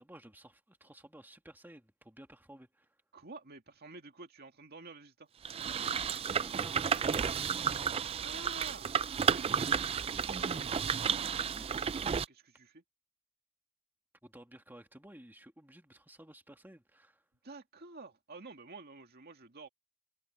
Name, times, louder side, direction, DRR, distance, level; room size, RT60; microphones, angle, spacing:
voice 1, 0.0-2.9 6.2-7.6 11.4-11.8 14.2-17.2, right 1 dB, 10° right, 1.9 m, -54 dB
voice 2, 3.1-5.3 8.2-8.9 9.2-10.9 12.1-12.8 17.4-19.7, right 3 dB, 45° right, 2.2 m, -50 dB
sound 1, 5.4-12.2, right 7 dB, 25° right, 0.3 m, -32 dB
head